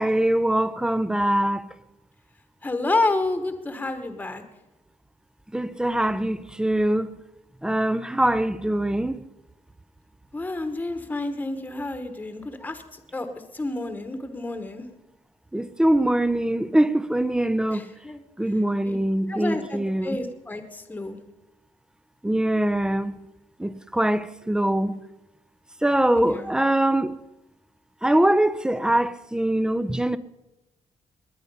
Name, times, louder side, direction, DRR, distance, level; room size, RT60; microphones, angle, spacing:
voice 1, 0.0-1.6 5.5-7.1 7.6-9.2 15.5-17.8 18.4-20.2 22.2-23.2 23.6-25.0 25.8-27.1 28.0-30.2, right 1 dB, 5° right, 0.4 m, -23 dB
voice 2, 2.6-4.4 10.3-13.3 13.5-14.9 17.7-18.2 18.9-19.0 19.3-21.2 26.1-26.5, left 2 dB, 15° left, 1.1 m, -29 dB
20.0 x 9.8 x 5.4 m
cardioid pair, 155°, 12 cm